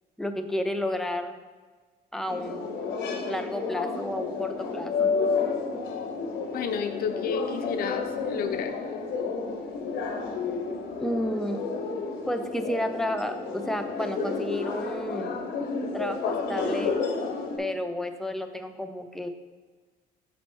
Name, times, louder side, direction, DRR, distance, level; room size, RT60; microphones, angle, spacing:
voice 1, 0.2-1.4 2.1-2.7 3.3-5.1 11.0-11.7 12.3-15.4 15.9-17.0 17.6-19.3, left 1 dB, ahead, 6 dB, 0.4 m, -31 dB
sound 1, 2.3-17.6, left 4 dB, 80° left, 1.0 m, -31 dB
voice 2, 6.5-8.8, left 6 dB, 60° left, 7 dB, 0.6 m, -31 dB
5.2 x 4.2 x 4.5 m, 1.4 s
cardioid pair, 110°, 17 cm